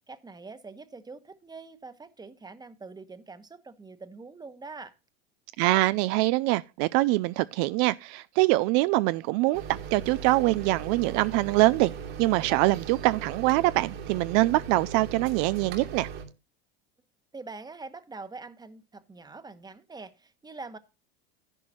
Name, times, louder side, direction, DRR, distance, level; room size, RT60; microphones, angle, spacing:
voice 1, 0.1-4.9 17.3-20.8, right 3 dB, 15° right, 1.1 m, -44 dB
voice 2, 5.6-11.9 12.2-16.1, right 19 dB, 60° right, 0.5 m, -24 dB
sound 1, 9.5-16.2, right 6 dB, 80° right, 2.8 m, -39 dB
10.5 x 10.5 x 2.9 m
hypercardioid pair, 95°, 30 cm